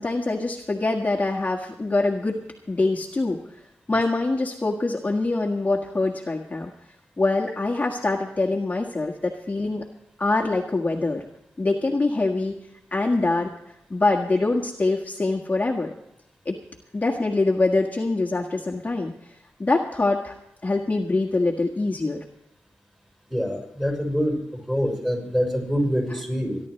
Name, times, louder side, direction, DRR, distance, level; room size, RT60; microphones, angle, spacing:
voice 1, 0.0-2.4 2.7-3.4 3.9-6.7 7.2-9.8 10.2-11.2 11.6-12.5 12.9-13.5 13.9-15.9 16.4-16.6 16.9-19.1 19.6-20.3 20.6-22.2, left 2 dB, 30° left, -1 dB, 1.6 m, -24 dB
voice 2, 23.3-24.4 24.7-26.6, equal, 10° right, 0 dB, 5.6 m, -25 dB
29.0 x 11.0 x 3.2 m, 0.79 s
wide cardioid pair, 90°, 5 cm